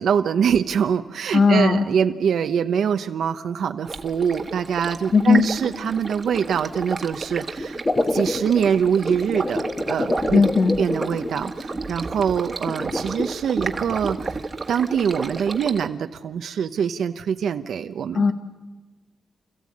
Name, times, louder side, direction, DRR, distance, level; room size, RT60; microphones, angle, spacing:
voice 1, 0.0-7.8 8.1-14.4 14.7-18.3, right 7 dB, 75° right, 8 dB, 0.8 m, -24 dB
voice 2, 1.3-1.8 5.1-5.5 10.3-10.8 18.1-18.3, left 4 dB, 40° left, 7 dB, 1.1 m, -17 dB
Stream, 3.9-15.9, right 3 dB, 25° right, 1.3 m, -32 dB
sound 1, 7.6-11.8 12.7-13.3, left 2 dB, 20° left, 1.2 m, -27 dB
28.5 x 14.5 x 8.6 m, 1.3 s
wide cardioid pair, 155°, 0 cm